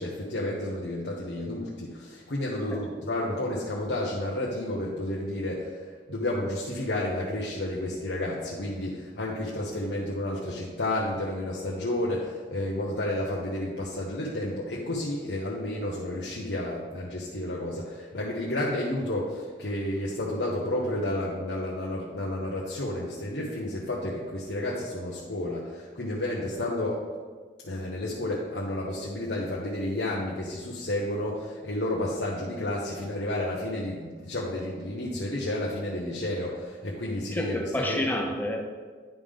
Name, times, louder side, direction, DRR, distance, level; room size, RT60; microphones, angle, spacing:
voice 1, 0.0-5.8 6.1-27.0 27.6-37.6 37.9-38.0, left 1 dB, 85° left, -4 dB, 1.0 m, -31 dB
voice 2, 37.3-38.6, left 1 dB, 10° left, 2 dB, 0.7 m, -29 dB
10.5 x 3.7 x 5.1 m, 1.5 s
head